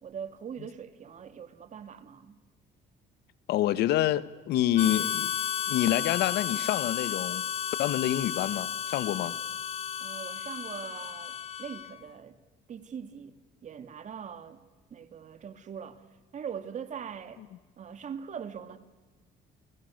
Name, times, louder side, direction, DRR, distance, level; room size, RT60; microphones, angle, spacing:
voice 1, 0.0-2.4 10.0-12.4 12.7-14.6 14.9-16.0 16.3-17.4 17.8-18.8, right 7 dB, 45° right, 2.5 m, -41 dB
voice 2, 3.5-5.3 5.7-7.4 7.8-9.3, left 13 dB, 80° left, 1.2 m, -27 dB
Harmonica, 4.8-12.0, left 9 dB, 35° left, 0.9 m, -33 dB
30.0 x 30.0 x 6.6 m
cardioid pair, 110°, 17 cm